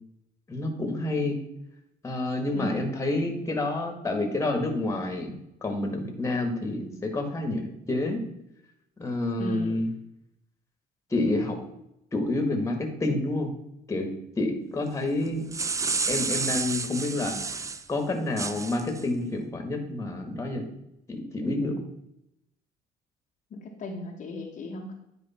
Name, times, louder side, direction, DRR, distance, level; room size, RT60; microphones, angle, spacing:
voice 1, 0.5-1.4 2.0-5.4 5.6-8.2 9.0-9.9 11.1-11.6 12.1-13.5 13.9-14.1 14.4-15.4 16.1-17.4 17.9-20.7 21.1-21.9, left 2 dB, 20° left, 4 dB, 1.7 m, -28 dB
voice 2, 2.5-2.8 9.4-9.8 23.5-24.9, left 2 dB, 45° left, 0 dB, 1.2 m, -36 dB
sound 1, 15.3-17.8 18.4-19.0, right 4 dB, 20° right, 0.5 m, -30 dB
9.6 x 4.9 x 4.3 m, 0.82 s
cardioid pair, 110°, 17 cm